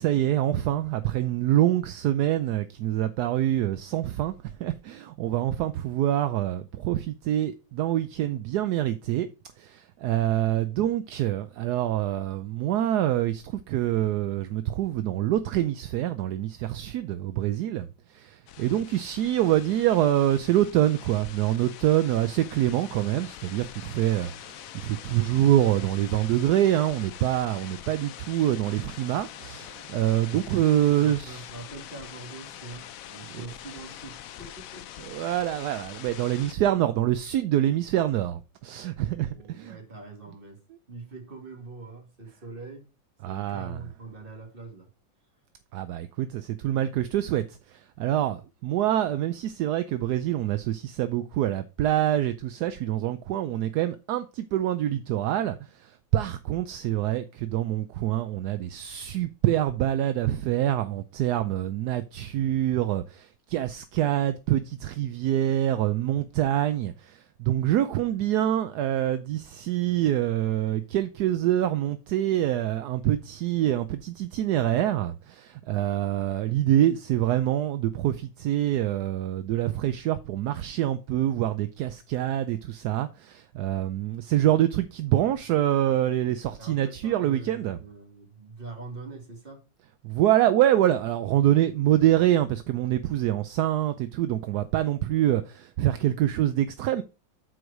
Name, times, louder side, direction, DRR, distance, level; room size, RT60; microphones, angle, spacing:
voice 1, 0.0-4.3 4.6-9.3 9.6-31.4 33.3-33.4 35.1-39.8 43.2-43.8 45.7-87.8 90.0-97.0, right 12 dB, 70° right, 1.0 m, -25 dB
sound 1, 18.5-36.5, left 11 dB, 85° left, 0.7 m, -44 dB
voice 2, 30.8-34.9 39.2-40.6 40.9-42.9 43.3-44.9 85.5-85.6 85.9-86.0 86.3-89.6, right 3 dB, 30° right, 2.3 m, -43 dB
8.1 x 4.7 x 4.7 m
omnidirectional pair, 2.1 m